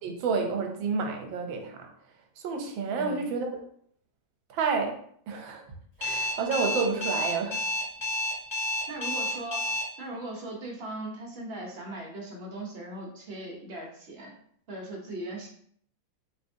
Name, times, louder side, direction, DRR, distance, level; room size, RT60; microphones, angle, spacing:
voice 1, 0.0-1.9 2.4-3.5 4.5-5.0 5.3-5.6 6.0-7.6, right 4 dB, 85° right, 3 dB, 1.5 m, -29 dB
voice 2, 2.9-3.2 8.9-9.7 10.0-14.3 14.7-15.5, right 1 dB, 45° right, -1 dB, 0.9 m, -39 dB
Alarm, 6.0-9.8, left 2 dB, 15° left, 1.1 m, -29 dB
4.2 x 3.9 x 2.7 m, 0.64 s
omnidirectional pair, 2.1 m